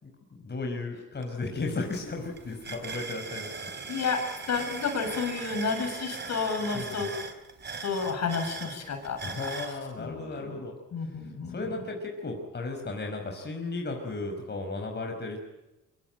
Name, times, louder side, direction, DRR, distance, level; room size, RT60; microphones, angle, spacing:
voice 1, 0.0-3.7 6.7-7.1 9.2-10.8 11.5-15.4, left 3 dB, 35° left, 2 dB, 5.2 m, -35 dB
sound 1, 1.2-1.3 1.6-9.8, right 4 dB, 35° right, 3.4 m, -39 dB
voice 2, 3.9-7.1 7.8-9.5 10.0-10.6 10.9-11.8, left 5 dB, 60° left, 5 dB, 7.4 m, -31 dB
23.5 x 23.0 x 9.1 m, 0.99 s
cardioid pair, 90°, 30 cm